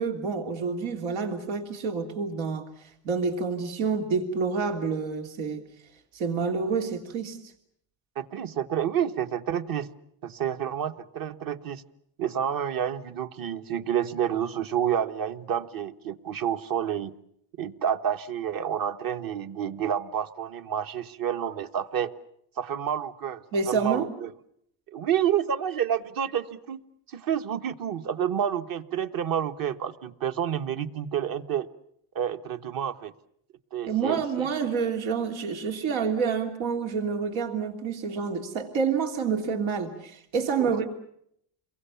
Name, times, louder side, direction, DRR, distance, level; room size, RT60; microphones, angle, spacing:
voice 1, 0.0-2.6 3.0-5.6 6.1-7.4 23.5-24.1 33.9-40.8, right 5 dB, 85° right, 3 dB, 3.3 m, -28 dB
voice 2, 8.1-9.9 10.2-11.8 12.2-17.1 17.6-22.1 22.6-24.3 24.9-26.8 27.1-31.7 32.1-33.1 33.7-34.5 40.6-40.8, right 9 dB, 45° right, 9 dB, 1.5 m, -29 dB
29.0 x 23.0 x 7.1 m, 0.70 s
cardioid pair, 115°, 47 cm